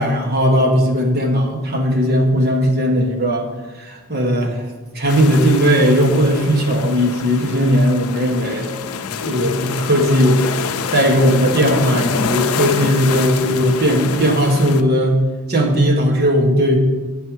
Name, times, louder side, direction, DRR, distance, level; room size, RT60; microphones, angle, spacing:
voice 1, 0.0-3.5 3.8-4.6 4.9-8.7 9.2-10.4 10.9-15.2 15.5-16.8, equal, 45° right, 1 dB, 1.4 m, -17 dB
sound 1, 5.1-14.8, left 6 dB, 90° left, 0.5 m, -26 dB
10.0 x 5.5 x 4.7 m, 1.2 s
head